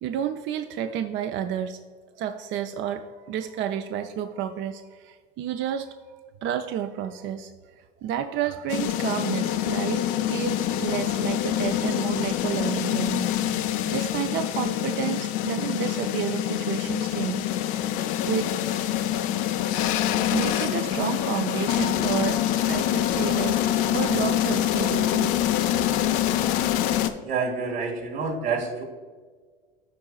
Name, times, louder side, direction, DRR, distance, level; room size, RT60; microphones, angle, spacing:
voice 1, 0.0-1.8 2.2-5.9 6.4-7.5 8.0-13.3 13.9-17.4 17.8-18.6 20.3-23.6 23.9-25.6, right 9 dB, 40° right, 7 dB, 0.5 m, -30 dB
sound 1, 8.7-27.1, left 12 dB, 60° left, 0.7 m, -25 dB
voice 2, 27.2-28.8, right 4 dB, 80° right, -1 dB, 2.1 m, -28 dB
14.0 x 4.7 x 2.3 m, 1.5 s
hypercardioid pair, 80°, 30 cm